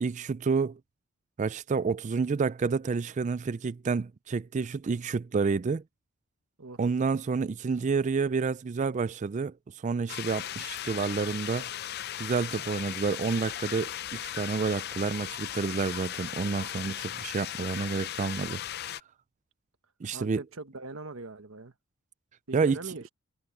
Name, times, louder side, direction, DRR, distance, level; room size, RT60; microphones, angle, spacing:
voice 1, 0.0-0.8 1.4-5.8 6.8-9.5 9.8-11.7 12.2-18.6 20.0-20.4 22.5-22.8, right 4 dB, 35° right, 0.3 m, -29 dB
sound 1, 10.1-19.0, left 11 dB, 50° left, 0.5 m, -37 dB
voice 2, 20.1-21.7 22.5-23.0, right 3 dB, 70° right, 1.3 m, -41 dB
head